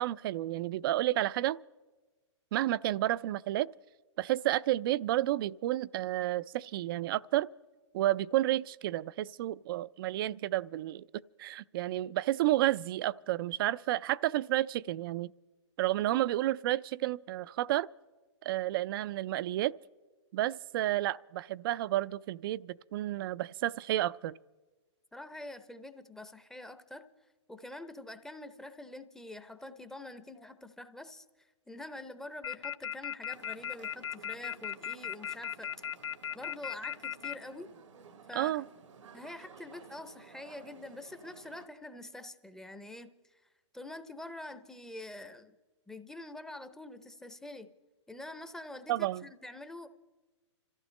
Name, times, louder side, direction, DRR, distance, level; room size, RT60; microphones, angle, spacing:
voice 1, 0.0-1.6 2.5-3.7 4.2-7.5 7.9-11.0 11.4-15.3 15.8-17.9 18.4-19.7 20.3-24.3 38.4-38.6 48.9-49.2, right 15 dB, 45° right, 0.4 m, -31 dB
voice 2, 25.1-27.1 27.5-35.7 36.3-37.7 38.3-38.6 39.1-43.4 43.7-45.6 45.9-47.7 48.1-49.9, left 1 dB, 5° left, 0.7 m, -46 dB
sound 1, 32.4-37.3, left 9 dB, 65° left, 1.0 m, -36 dB
sound 2, 33.3-41.7, right 5 dB, 80° right, 1.2 m, -55 dB
27.0 x 15.0 x 3.2 m
hypercardioid pair, 130°, 16 cm